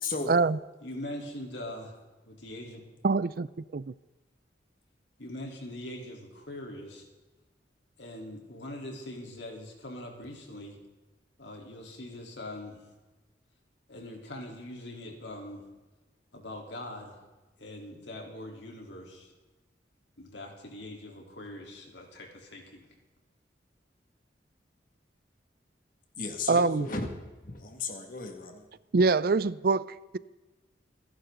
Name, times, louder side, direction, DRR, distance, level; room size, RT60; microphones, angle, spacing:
voice 1, 0.3-0.6 3.0-3.9 26.5-26.9 28.9-30.2, right 3 dB, 55° right, 0.5 m, -25 dB
voice 2, 0.8-2.0 2.2-2.8 5.2-7.1 8.0-10.8 11.4-12.8 13.9-15.6 16.3-17.2 17.6-19.3 20.2-22.9, left 1 dB, 80° left, 3.7 m, -42 dB
voice 3, 26.2-27.1 27.4-28.7, left 3 dB, 50° left, 2.1 m, -35 dB
28.0 x 11.0 x 4.0 m
head